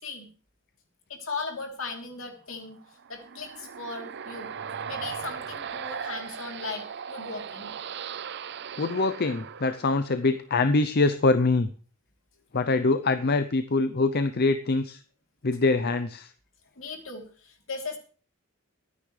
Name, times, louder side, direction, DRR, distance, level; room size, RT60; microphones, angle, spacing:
voice 1, 1.1-2.8 3.1-4.5 4.9-7.8 16.7-18.0, left 4 dB, 70° left, 3 dB, 3.4 m, -37 dB
sound 1, 2.8-10.4, right 7 dB, 55° right, 0.6 m, -38 dB
voice 2, 8.8-11.7 12.5-15.0 15.4-16.3, left 3 dB, 50° left, 10 dB, 0.7 m, -24 dB
23.0 x 9.7 x 3.3 m, 0.39 s
head